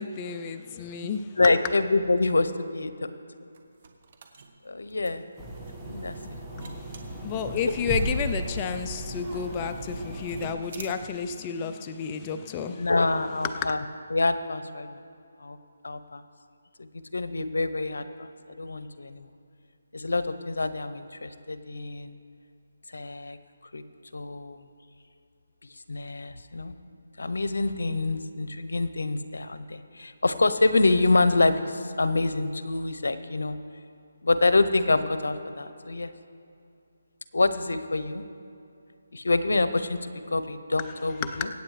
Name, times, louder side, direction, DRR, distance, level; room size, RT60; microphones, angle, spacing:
voice 1, 0.0-1.2 7.2-12.7 13.4-13.7 41.2-41.4, left 6 dB, 20° left, 7 dB, 0.4 m, -31 dB
voice 2, 1.4-3.1 4.6-5.2 5.8-6.2 6.5-6.8 12.7-13.8 14.1-15.0 15.4-15.6 15.8-16.2 16.8-18.3 18.6-19.3 19.9-22.2 22.9-23.4 23.7-23.8 24.1-24.7 25.9-26.7 27.2-33.6 34.2-36.1 37.3-38.2 39.1-41.5, left 3 dB, 85° left, 12 dB, 0.8 m, -26 dB
sound 1, 3.5-11.3, right 3 dB, 45° right, 1.2 m, -45 dB
sound 2, 5.4-10.5, right 1 dB, 5° right, 1.3 m, -35 dB
24.5 x 8.6 x 3.3 m, 2.5 s
hypercardioid pair, 165°, 0 cm